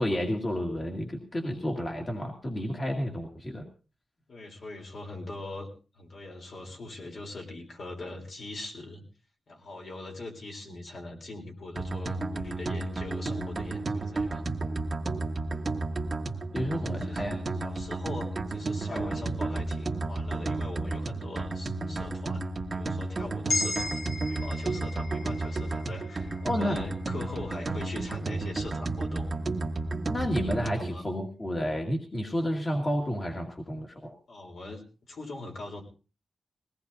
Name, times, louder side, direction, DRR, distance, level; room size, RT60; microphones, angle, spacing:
voice 1, 0.0-3.6 16.5-17.4 18.9-19.1 26.4-26.8 30.1-34.1, equal, 30° left, 0 dB, 2.2 m, -31 dB
voice 2, 4.3-5.7 5.9-9.0 9.5-14.5 16.7-22.4 22.7-29.3 30.6-31.1 34.3-35.8, left 2 dB, 65° left, 0 dB, 3.6 m, -41 dB
sound 1, 11.8-30.9, right 3 dB, 40° right, 1.3 m, -32 dB
sound 2, 23.5-27.7, left 3 dB, 85° left, 3.0 m, -36 dB
21.0 x 17.5 x 2.7 m, 0.34 s
wide cardioid pair, 110°, 0 cm